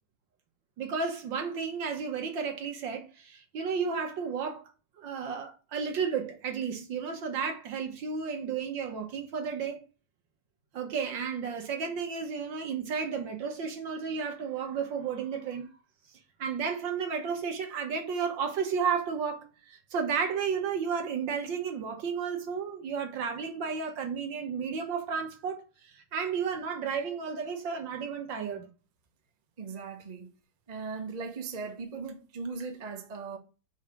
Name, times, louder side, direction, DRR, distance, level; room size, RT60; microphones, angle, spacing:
voice 1, 0.8-4.6 5.0-9.8 10.7-15.7 16.4-28.7, right 6 dB, 60° right, 1.8 m, -33 dB
voice 2, 29.6-30.3 30.7-33.4, right 4 dB, 40° right, 0.5 m, -38 dB
5.0 x 4.8 x 5.7 m
omnidirectional pair, 2.4 m